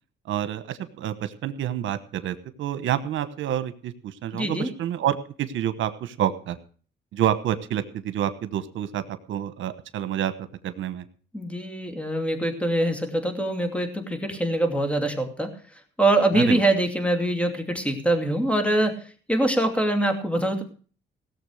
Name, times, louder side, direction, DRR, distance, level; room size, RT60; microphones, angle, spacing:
voice 1, 0.2-6.6 7.1-11.0 16.3-16.6, right 11 dB, 75° right, 11 dB, 1.1 m, -28 dB
voice 2, 4.3-4.7 11.3-15.5 16.0-19.0 19.3-20.6, right 1 dB, 5° left, 5 dB, 2.6 m, -24 dB
17.5 x 7.1 x 6.3 m, 0.42 s
cardioid pair, 90°, 20 cm